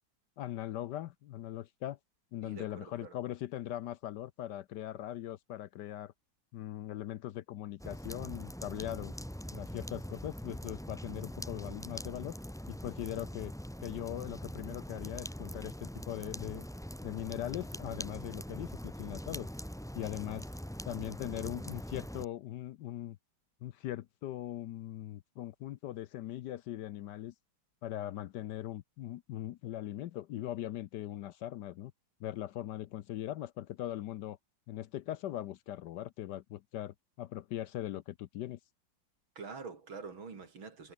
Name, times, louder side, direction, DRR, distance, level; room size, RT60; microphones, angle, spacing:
voice 1, 0.4-2.0 2.3-6.1 6.5-9.1 9.5-12.4 12.7-13.5 13.8-16.6 17.0-19.5 19.9-20.5 20.8-23.2 23.6-27.3 27.8-31.9 32.2-34.4 34.7-38.6, left 13 dB, 70° left, 1.1 m, -40 dB
voice 2, 2.4-3.2 39.4-40.9, right 5 dB, 80° right, 4.1 m, -46 dB
sound 1, 7.8-22.2, equal, ahead, 1.4 m, -43 dB
omnidirectional pair, 2.1 m